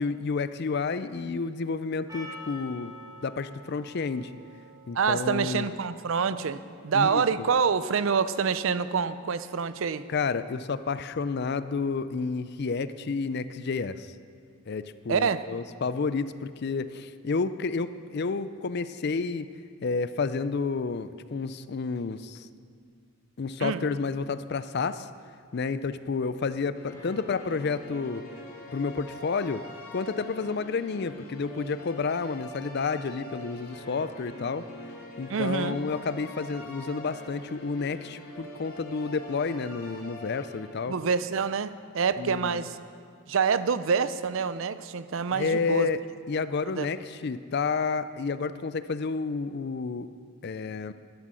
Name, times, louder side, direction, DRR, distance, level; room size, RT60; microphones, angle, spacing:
voice 1, 0.0-2.9 3.2-4.3 4.9-5.7 6.9-7.5 10.1-14.1 14.7-19.5 19.8-22.5 23.4-25.1 25.5-28.2 28.7-29.6 29.9-34.7 35.2-41.0 42.2-42.6 45.3-46.0 46.3-50.1 50.4-50.9, left 4 dB, 50° left, 13 dB, 0.5 m, -30 dB
Percussion, 2.1-7.1, left 1 dB, 15° right, 2.5 m, -47 dB
voice 2, 4.9-10.0 15.1-15.5 23.6-23.9 35.3-35.8 40.9-42.8 43.3-45.9 46.8-46.9, right 6 dB, 65° right, 14 dB, 0.5 m, -26 dB
sound 1, 26.7-41.1, left 1 dB, 90° left, 2.6 m, -44 dB
12.5 x 11.5 x 6.3 m, 2.2 s
head